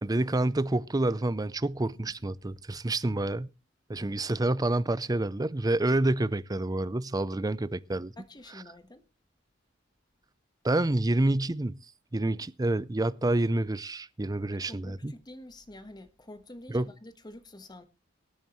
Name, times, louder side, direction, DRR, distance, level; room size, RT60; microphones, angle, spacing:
voice 1, 0.0-3.5 3.9-8.1 10.6-11.8 12.1-15.1 16.7-16.9, right 2 dB, 20° right, 0.6 m, -28 dB
voice 2, 8.2-9.0 14.5-17.8, left 1 dB, 20° left, 1.3 m, -48 dB
23.5 x 9.1 x 3.1 m
head